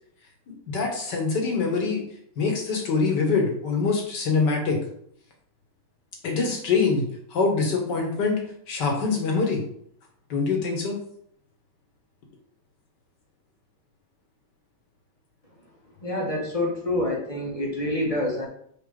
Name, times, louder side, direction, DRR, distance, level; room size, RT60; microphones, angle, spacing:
voice 1, 0.7-2.0 2.4-4.8 6.2-8.4 8.7-9.6 10.3-11.0, left 4 dB, 65° left, 1 dB, 2.2 m, -24 dB
voice 2, 16.0-18.5, left 1 dB, 20° left, -2 dB, 1.3 m, -27 dB
5.2 x 4.6 x 5.2 m, 0.66 s
omnidirectional pair, 2.0 m